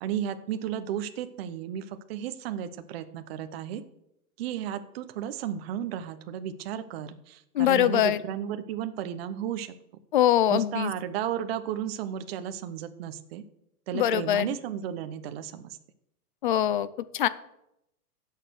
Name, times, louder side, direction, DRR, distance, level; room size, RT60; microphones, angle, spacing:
voice 1, 0.0-3.8 4.4-9.7 10.5-13.4 13.9-15.8, right 9 dB, 40° right, 10 dB, 0.9 m, -34 dB
voice 2, 7.5-8.2 10.1-10.9 13.9-14.5 16.4-16.9 17.1-17.3, left 11 dB, 35° left, 17 dB, 0.4 m, -23 dB
16.0 x 6.7 x 6.3 m, 0.82 s
hypercardioid pair, 160°, 46 cm